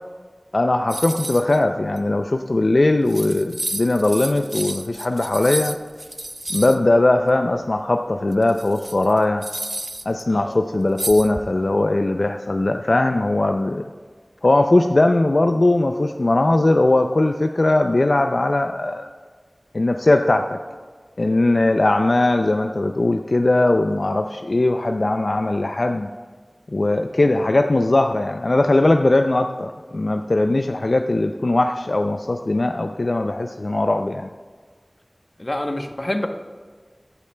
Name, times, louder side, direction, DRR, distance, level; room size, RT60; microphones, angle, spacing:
voice 1, 0.5-5.8 6.5-9.4 10.1-13.9 14.4-19.1 19.7-20.6 21.2-26.1 26.7-34.3, left 2 dB, 75° left, 6 dB, 0.3 m, -19 dB
sound 1, 0.9-1.6 2.0-2.1 2.8-2.9 3.1-6.8 8.3-10.2 11.0-11.7, right 1 dB, 35° right, 0.5 m, -31 dB
voice 2, 10.3-10.6 35.4-36.3, left 1 dB, 45° left, 5 dB, 0.9 m, -27 dB
15.0 x 9.7 x 2.2 m, 1.5 s
wide cardioid pair, 45°, 0 cm